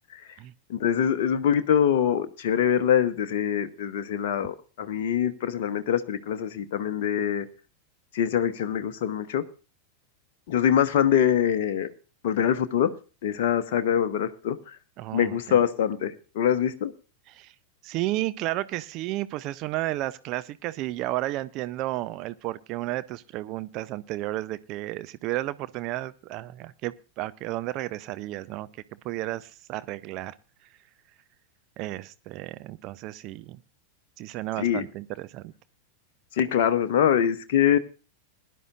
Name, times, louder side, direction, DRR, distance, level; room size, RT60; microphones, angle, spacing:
voice 1, 0.7-7.5 8.1-9.4 10.5-11.9 12.2-12.9 13.2-14.8 15.1-16.9 34.6-34.8 36.3-37.8, left 9 dB, 50° left, 8 dB, 0.9 m, -24 dB
voice 2, 15.0-15.6 17.3-17.5 17.8-28.7 29.0-30.3 31.8-33.6 34.2-35.5, right 16 dB, 40° right, 15 dB, 0.5 m, -32 dB
21.5 x 11.0 x 2.5 m, 0.33 s
figure-of-eight pair, 90°, 0 cm